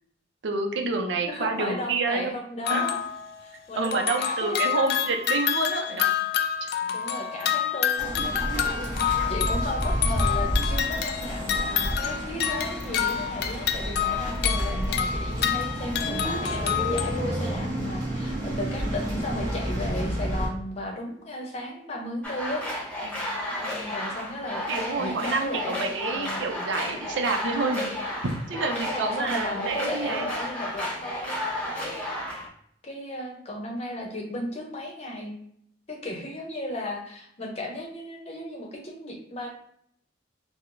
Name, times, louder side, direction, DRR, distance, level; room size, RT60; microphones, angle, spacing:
voice 1, 0.4-2.3 2.7-3.0 3.8-6.1 6.6-7.0 23.0-23.3 24.7-27.9 28.5-30.3, right 3 dB, 70° right, 4 dB, 0.5 m, -28 dB
voice 2, 1.3-3.0 3.4-5.0 6.9-8.8 9.3-22.6 23.6-24.6 25.0-26.5 28.7-32.3 32.8-35.4 35.9-39.5, left 1 dB, 35° left, 1 dB, 0.7 m, -35 dB
sound 1, 2.6-3.5 3.8-17.3, left 8 dB, 60° left, 0.3 m, -28 dB
sound 2, 8.0-20.5, equal, 20° right, 1.3 m, -30 dB
sound 3, 22.2-32.5, left 1 dB, 10° left, 0.9 m, -32 dB
4.6 x 2.0 x 2.6 m, 0.68 s
head